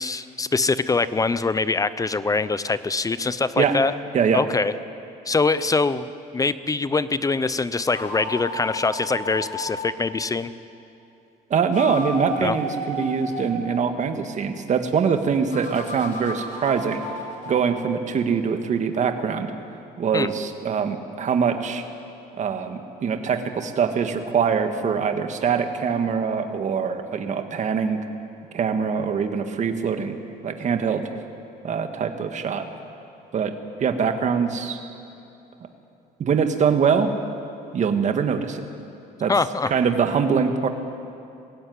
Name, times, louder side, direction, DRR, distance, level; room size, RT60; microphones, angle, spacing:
voice 1, 0.0-3.9 4.3-4.7 5.3-6.1 6.3-10.5 12.4-12.6 20.1-20.3 39.3-39.7, left 3 dB, 20° left, 15 dB, 0.6 m, -23 dB
sound 1, 7.8-9.9 11.6-13.5 15.5-17.6, left 1 dB, 50° left, 5.7 m, -33 dB
voice 2, 11.5-17.0 17.4-19.5 20.0-21.8 22.3-28.0 28.5-30.2 30.4-31.1 31.6-32.7 33.3-33.5 33.8-34.8 36.2-37.1 37.7-38.6 39.2-39.3 39.7-40.7, right 6 dB, 45° right, 7 dB, 1.8 m, -23 dB
21.0 x 16.5 x 9.6 m, 2.7 s
cardioid pair, 110°, 17 cm